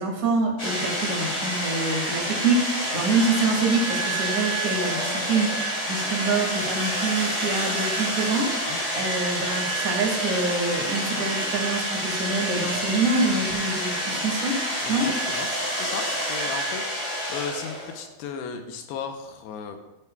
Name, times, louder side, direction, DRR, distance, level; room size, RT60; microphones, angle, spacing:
voice 1, 0.0-14.5 14.9-15.1, right 3 dB, 40° right, -2 dB, 1.2 m, -26 dB
sound 1, 0.6-18.1, equal, 20° left, 2.2 m, -28 dB
voice 2, 14.8-19.8, left 6 dB, 80° left, 6 dB, 2.8 m, -36 dB
13.5 x 9.1 x 2.3 m, 0.97 s
omnidirectional pair, 4.8 m